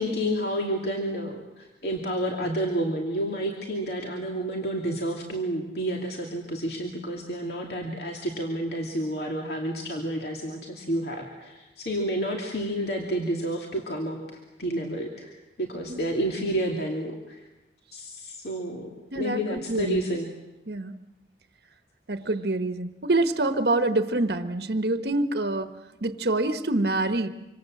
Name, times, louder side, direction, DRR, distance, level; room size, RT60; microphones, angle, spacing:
voice 1, 0.0-14.2 14.6-17.4 17.9-18.9 19.2-20.3, right 1 dB, 60° left, 0 dB, 2.6 m, -30 dB
voice 2, 19.1-20.0 20.7-20.9 22.1-25.7 26.0-27.3, right 2 dB, 60° right, 9 dB, 1.2 m, -26 dB
26.0 x 26.0 x 7.7 m, 1.0 s
head